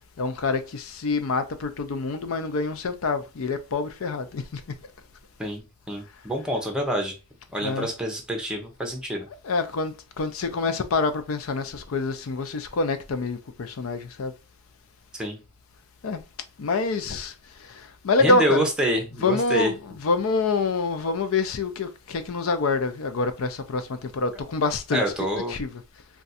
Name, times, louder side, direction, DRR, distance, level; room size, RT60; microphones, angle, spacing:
voice 1, 0.2-4.6 7.6-7.9 9.4-14.3 16.0-16.2 16.6-17.3 18.0-18.7 19.1-25.0 25.5-25.8, left 3 dB, 80° left, 0.5 m, -26 dB
voice 2, 5.4-7.1 7.5-9.3 15.1-15.4 18.2-19.7 24.9-25.5, equal, 5° right, 0.7 m, -27 dB
2.5 x 2.3 x 4.0 m
head